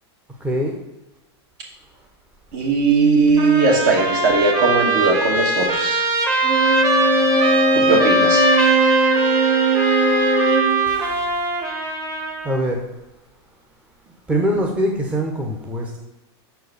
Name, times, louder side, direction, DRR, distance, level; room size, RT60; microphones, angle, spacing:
voice 1, 0.4-0.7 10.9-11.3 12.4-12.8 14.3-16.0, equal, 10° right, 0 dB, 0.8 m, -23 dB
voice 2, 2.5-6.1 7.7-8.5, right 4 dB, 55° right, 0 dB, 2.3 m, -18 dB
Trumpet, 3.4-12.6, right 2 dB, 25° right, 1.4 m, -21 dB
Bowed string instrument, 6.4-10.8, right 2 dB, 70° right, 2.6 m, -19 dB
6.1 x 4.6 x 6.5 m, 1.0 s
supercardioid pair, 155°, 14 cm